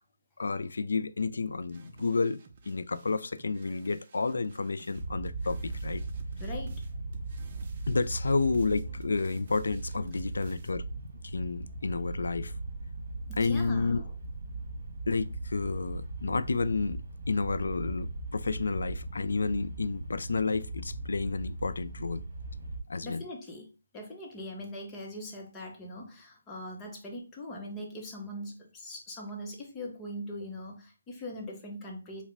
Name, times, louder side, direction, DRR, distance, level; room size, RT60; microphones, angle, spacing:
voice 1, 0.4-2.4 2.7-6.0 7.9-10.9 11.2-12.5 13.4-14.0 15.1-17.0 17.3-22.2 22.9-23.2, left 4 dB, 75° left, 0.3 m, -30 dB
sound 1, 1.7-10.7, right 5 dB, 35° right, 0.5 m, -57 dB
sound 2, 4.9-22.8, right 2 dB, 55° right, 1.5 m, -38 dB
voice 2, 6.4-6.8 13.3-14.1 23.0-32.2, left 1 dB, 15° left, 0.7 m, -41 dB
4.8 x 2.1 x 3.3 m
hypercardioid pair, 170°, 0 cm